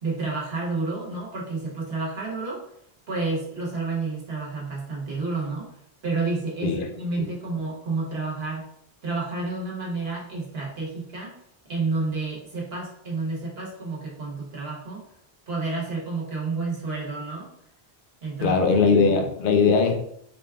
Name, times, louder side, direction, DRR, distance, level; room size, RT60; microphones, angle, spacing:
voice 1, 0.0-2.6 3.1-5.8 6.0-8.7 9.0-15.0 15.5-17.5 18.2-18.6, right 3 dB, 75° right, -3 dB, 1.2 m, -30 dB
voice 2, 18.4-20.0, left 5 dB, 60° left, 3 dB, 0.7 m, -20 dB
3.9 x 3.4 x 2.3 m, 0.70 s
omnidirectional pair, 1.0 m